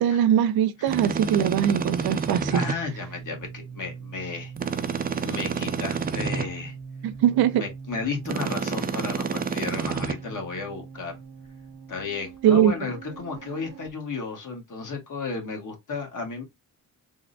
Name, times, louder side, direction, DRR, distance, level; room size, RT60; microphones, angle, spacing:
voice 1, 0.0-2.6 7.0-7.6 12.4-12.7, right 10 dB, 80° right, 0.5 m, -21 dB
sound 1, 0.9-2.8 4.6-6.5 8.2-10.1, right 5 dB, 25° right, 0.4 m, -28 dB
sound 2, 1.6-13.9, right 5 dB, 40° right, 0.8 m, -42 dB
voice 2, 2.5-4.5 5.2-6.8 7.6-11.2 11.9-16.4, left 4 dB, 55° left, 1.4 m, -33 dB
3.5 x 2.1 x 2.6 m
cardioid pair, 80°, 37 cm